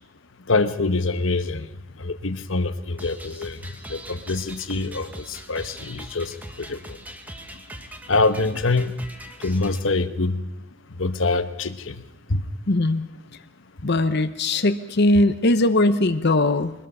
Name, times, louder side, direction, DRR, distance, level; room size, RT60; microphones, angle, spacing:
voice 1, 0.5-1.7 2.0-3.6 3.9-7.0 8.1-9.1 9.4-10.5 11.0-12.0 12.3-12.4, left 3 dB, 70° left, 11 dB, 1.1 m, -25 dB
sound 1, 3.0-9.8, right 1 dB, 10° right, 1.5 m, -41 dB
voice 2, 12.7-13.1 13.8-16.7, left 2 dB, 55° left, 11 dB, 0.9 m, -20 dB
22.5 x 21.0 x 5.6 m, 0.92 s
head